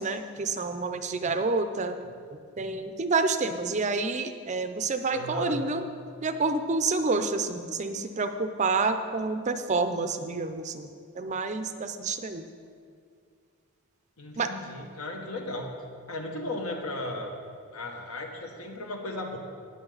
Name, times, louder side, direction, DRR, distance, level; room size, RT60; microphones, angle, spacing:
voice 1, 0.0-2.1 2.6-5.9 6.2-10.9 11.1-12.4 14.4-14.5, right 3 dB, 30° right, 8 dB, 0.5 m, -28 dB
voice 2, 5.1-5.6 14.2-15.8 16.1-17.3 17.7-19.4, left 2 dB, 70° left, 2 dB, 1.4 m, -35 dB
18.0 x 6.4 x 4.0 m, 2.2 s
head